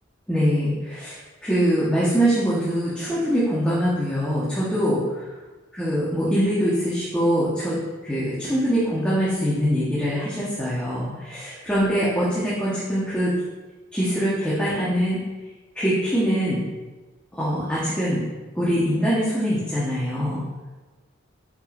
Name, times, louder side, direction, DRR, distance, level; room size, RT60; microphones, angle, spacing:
voice 1, 0.3-5.3 5.7-7.8 8.0-13.3 13.9-15.2 15.7-16.6 17.3-18.2 18.5-20.4, equal, 5° left, -10 dB, 1.2 m, -23 dB
7.0 x 5.6 x 2.5 m, 1.2 s
head